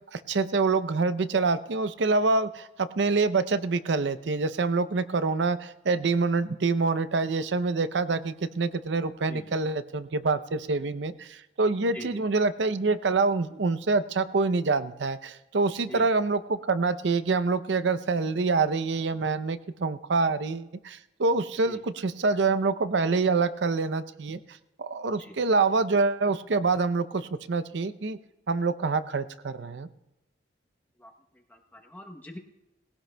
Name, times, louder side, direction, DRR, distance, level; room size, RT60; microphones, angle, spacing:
voice 1, 0.1-24.4 24.8-28.2 28.5-29.9, right 3 dB, 70° right, 13 dB, 0.6 m, -26 dB
voice 2, 9.3-9.6 11.9-12.2 15.9-16.1 21.7-21.8 25.2-25.4 31.0-32.4, left 1 dB, 10° left, 1 dB, 0.8 m, -44 dB
20.0 x 17.0 x 2.2 m, 0.91 s
head